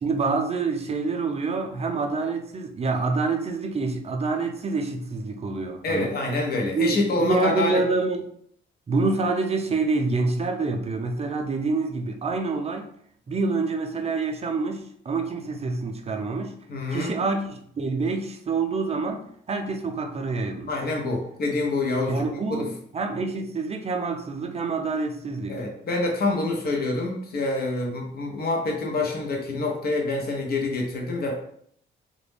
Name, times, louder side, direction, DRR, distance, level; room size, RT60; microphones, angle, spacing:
voice 1, 0.0-6.1 6.7-8.3 8.9-12.9 13.3-16.5 16.9-20.7 22.1-25.6, right 3 dB, 30° right, 4 dB, 0.5 m, -27 dB
voice 2, 5.8-7.8 16.7-17.1 20.7-22.7 25.5-31.4, left 2 dB, 50° left, 0 dB, 0.9 m, -26 dB
2.4 x 2.1 x 3.3 m, 0.67 s
cardioid pair, 90°, 20 cm